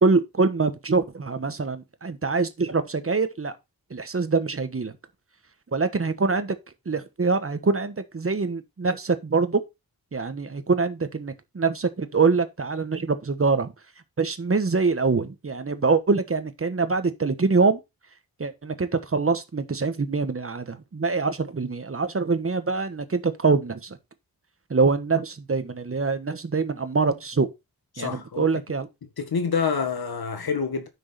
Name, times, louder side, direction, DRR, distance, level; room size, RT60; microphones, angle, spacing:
voice 1, 0.0-3.5 3.9-4.9 5.7-6.6 6.8-9.6 10.1-13.7 14.2-17.8 18.4-24.0 24.7-27.5 28.0-28.9, right 4 dB, 35° right, 1.3 m, -24 dB
voice 2, 27.9-28.5 29.2-30.9, left 5 dB, 80° left, 1.8 m, -27 dB
9.7 x 6.3 x 4.2 m
wide cardioid pair, 125°, 37 cm